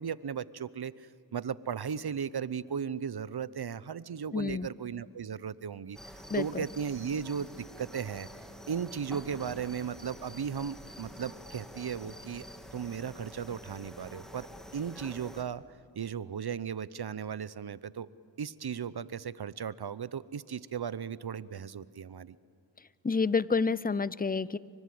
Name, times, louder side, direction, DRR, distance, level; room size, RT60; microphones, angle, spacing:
voice 1, 0.0-8.3 8.7-12.5 12.7-15.6 15.9-18.1 18.4-22.4, right 7 dB, 60° right, 17 dB, 0.8 m, -36 dB
voice 2, 4.3-4.7 6.3-6.6 23.0-24.6, left 4 dB, 20° left, 19 dB, 0.6 m, -29 dB
sound 1, 5.9-15.4, equal, ahead, 2.4 m, -48 dB
30.0 x 24.5 x 7.8 m, 2.4 s
cardioid pair, 50°, 45 cm